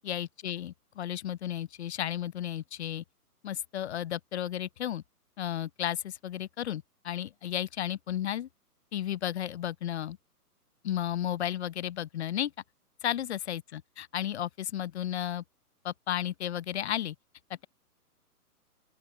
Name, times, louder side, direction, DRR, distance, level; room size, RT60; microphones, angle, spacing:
voice 1, 0.0-3.0 3.4-5.0 5.4-8.5 8.9-10.2 10.8-12.5 13.0-15.4 15.8-17.2 17.5-17.7, left 11 dB, 45° left, 0.9 m, -33 dB
open air
figure-of-eight pair, 135°, 47 cm